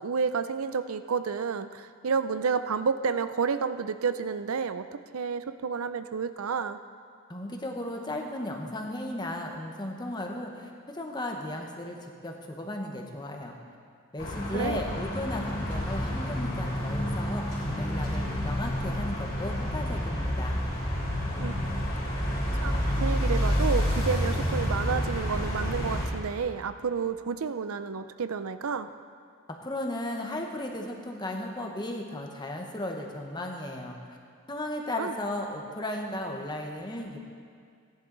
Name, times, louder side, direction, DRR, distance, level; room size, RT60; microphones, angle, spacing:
voice 1, 0.0-4.9 5.1-6.8 14.5-14.8 21.4-21.5 22.6-22.7 23.0-28.9 35.0-35.1, right 5 dB, 90° right, 11 dB, 0.5 m, -30 dB
voice 2, 7.3-12.0 12.2-13.6 14.1-20.6 29.5-34.2 34.5-37.2, left 1 dB, 20° left, 2 dB, 1.1 m, -35 dB
sound 1, 14.2-26.1, equal, 45° left, 3.6 m, -29 dB
17.0 x 10.5 x 4.0 m, 2.2 s
head